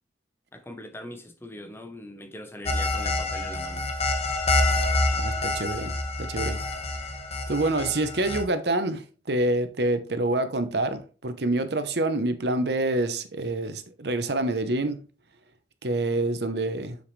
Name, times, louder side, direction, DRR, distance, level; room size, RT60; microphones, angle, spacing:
voice 1, 0.5-3.9, left 1 dB, 15° left, 1.0 m, -41 dB
sound 1, 2.7-8.4, left 2 dB, 35° left, 1.4 m, -27 dB
voice 2, 5.2-6.6 7.5-15.0 15.8-17.0, right 2 dB, 65° right, 0.9 m, -27 dB
7.3 x 6.7 x 3.3 m
head